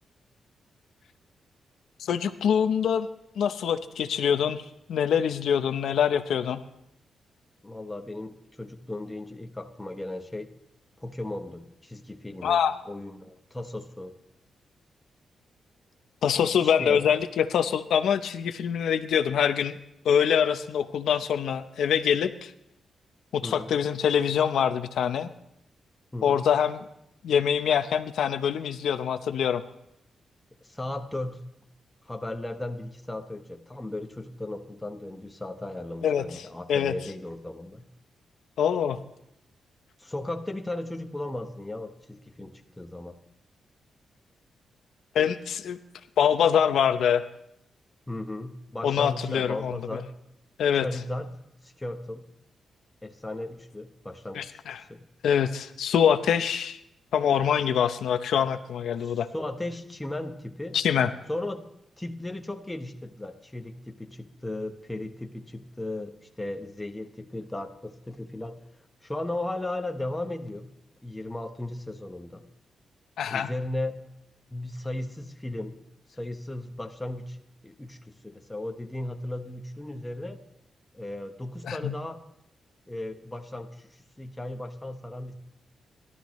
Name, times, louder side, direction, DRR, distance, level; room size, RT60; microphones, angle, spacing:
voice 1, 2.0-3.1 3.4-4.6 4.9-6.6 12.4-12.8 16.2-19.8 20.0-22.5 23.3-25.3 26.2-26.9 27.2-29.6 36.0-36.4 36.7-36.9 38.6-39.0 45.1-45.8 46.2-47.2 48.8-50.0 50.6-50.8 54.3-54.8 55.2-56.8 57.1-59.3 60.7-61.1 73.2-73.5 81.6-81.9, left 8 dB, 75° left, 10 dB, 0.7 m, -24 dB
voice 2, 7.6-10.5 11.0-14.1 16.3-17.2 23.4-23.8 26.1-26.5 30.6-31.5 32.0-37.9 40.0-43.2 48.1-50.1 50.8-51.3 51.6-52.2 53.0-54.6 54.9-55.0 59.0-60.8 61.3-61.6 62.0-68.6 69.0-70.7 71.0-72.4 73.3-74.0 74.5-75.8 76.2-77.4 77.6-80.4 80.9-82.2 82.9-85.3, left 1 dB, 10° left, 5 dB, 1.0 m, -36 dB
29.5 x 12.5 x 3.1 m, 0.80 s
wide cardioid pair, 160°, 0 cm